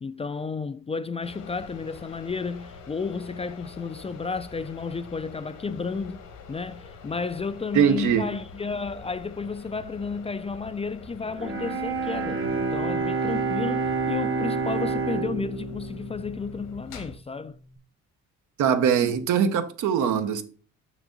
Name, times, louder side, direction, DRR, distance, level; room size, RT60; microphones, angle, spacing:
voice 1, 0.0-6.2 6.5-17.6, left 4 dB, 20° left, 0.3 m, -32 dB
sound 1, 1.2-17.2, left 4 dB, 80° left, 1.6 m, -45 dB
voice 2, 7.7-8.3 18.6-20.4, right 8 dB, 75° right, 0.9 m, -22 dB
Bowed string instrument, 11.3-17.4, right 4 dB, 45° right, 1.1 m, -29 dB
6.2 x 6.1 x 3.8 m
cardioid pair, 90°, 30 cm